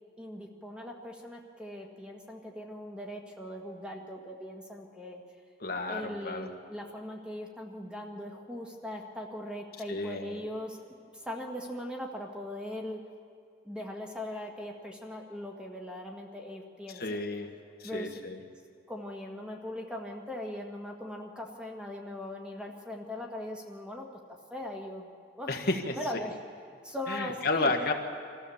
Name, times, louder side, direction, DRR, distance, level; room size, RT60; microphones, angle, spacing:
voice 1, 0.2-5.2 5.9-10.8 11.1-13.0 13.6-17.0 17.8-18.1 18.9-24.1 24.5-25.1 25.4-25.5 25.9-26.4 26.8-27.7, left 1 dB, 5° right, 1 dB, 1.5 m, -40 dB
voice 2, 5.6-6.5 9.9-10.4 16.9-17.5 17.8-18.4 25.5-26.0 27.1-27.9, left 3 dB, 55° left, 4 dB, 1.3 m, -31 dB
25.0 x 14.5 x 7.1 m, 2.3 s
head